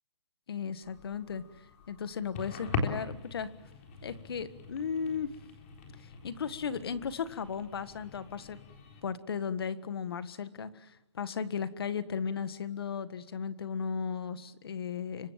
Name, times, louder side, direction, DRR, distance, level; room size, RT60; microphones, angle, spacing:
voice 1, 0.5-1.4 1.9-3.5 4.0-5.4 6.0-8.6 9.0-15.3, left 6 dB, 55° left, 13 dB, 1.7 m, -36 dB
sound 1, 0.8-9.0, left 4 dB, 25° left, 3.8 m, -41 dB
29.0 x 25.0 x 7.6 m, 0.89 s
hypercardioid pair, 175°, 15 cm